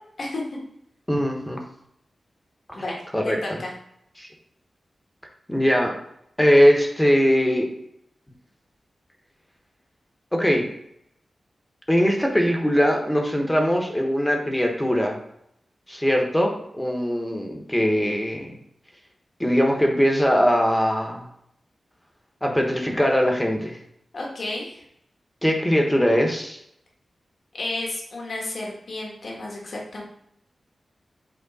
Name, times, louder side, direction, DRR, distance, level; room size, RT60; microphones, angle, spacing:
voice 1, 1.1-1.6 2.7-2.8 3.1-3.4 4.2-4.3 5.5-5.9 6.4-7.7 10.3-10.7 11.9-15.2 15.9-18.6 19.4-21.3 22.4-23.8 25.4-26.6, equal, 10° left, 2 dB, 1.1 m, -21 dB
voice 2, 3.2-3.7 24.1-24.8 27.5-30.0, left 2 dB, 55° left, -2 dB, 1.6 m, -32 dB
8.2 x 3.1 x 4.1 m, 0.74 s
wide cardioid pair, 120°, 0 cm